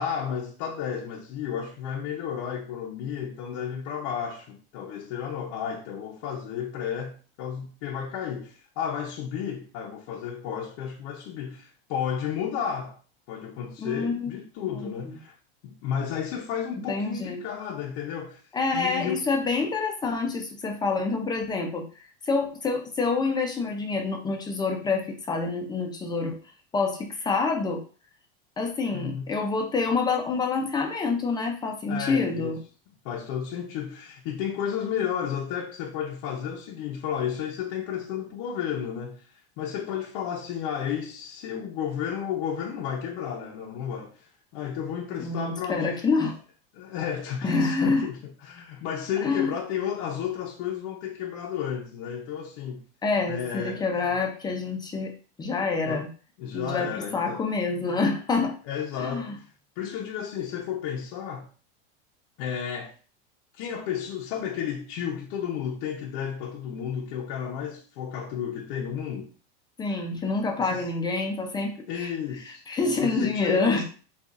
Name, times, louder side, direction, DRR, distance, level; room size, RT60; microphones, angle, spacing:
voice 1, 0.0-13.0 13.3-15.3 15.6-18.4 18.7-19.3 28.9-29.3 31.9-32.6 33.0-46.3 46.7-52.8 53.3-54.2 55.9-56.1 56.4-57.4 58.6-59.5 59.8-61.5 62.4-62.9 63.5-69.3 70.6-70.9 71.9-73.8, left 8 dB, 50° left, 0.7 m, -32 dB
voice 2, 13.8-14.3 14.7-14.9 16.9-17.4 18.5-21.9 22.2-26.4 26.7-27.8 28.6-32.6 45.2-46.3 47.4-48.1 49.2-49.5 53.0-55.1 55.4-56.1 56.5-58.6 59.0-59.4 69.8-72.1 72.7-73.8, left 4 dB, 15° left, 0.5 m, -27 dB
6.7 x 2.5 x 2.5 m
supercardioid pair, 140°, 30 cm